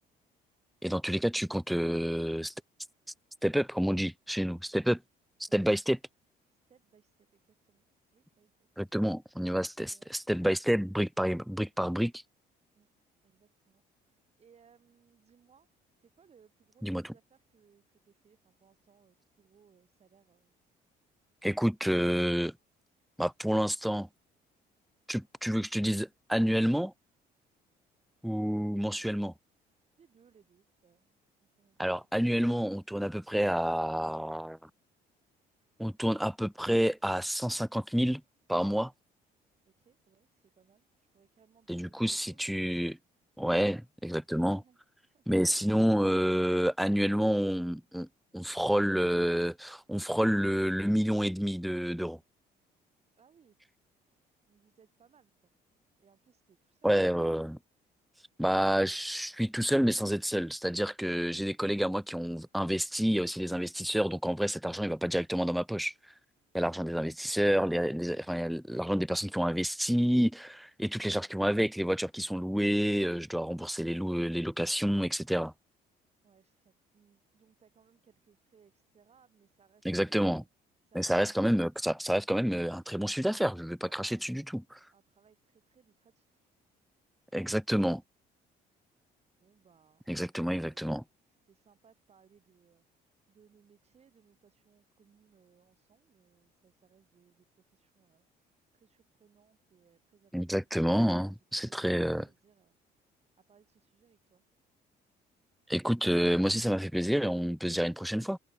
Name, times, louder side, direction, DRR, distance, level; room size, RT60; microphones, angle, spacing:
voice 1, 0.8-2.5 3.4-5.0 5.4-6.0 8.8-12.2 16.8-17.0 21.4-22.5 23.2-24.1 25.1-26.9 28.2-29.3 31.8-34.7 35.8-38.2 38.5-38.9 41.7-43.0 43.4-44.6 45.3-48.1 48.3-52.2 56.8-57.6 58.4-65.9 66.5-75.5 79.8-80.4 80.9-84.8 87.3-88.0 90.1-91.0 100.3-102.2 105.7-108.4, equal, ahead, 0.6 m, -29 dB
voice 2, 6.5-7.8 8.1-8.8 9.9-10.2 12.8-12.9 13.2-13.8 14.1-15.7 16.0-20.5 30.0-31.2 31.6-31.9 39.7-42.6 44.5-44.8 45.1-45.3 53.2-53.6 54.5-55.5 56.0-57.1 66.7-67.3 76.2-80.5 80.8-81.7 83.8-84.3 84.9-86.5 89.4-90.9 91.3-103.1 103.5-104.4, right 7 dB, 40° right, 5.4 m, -66 dB
open air
cardioid pair, 110°, 17 cm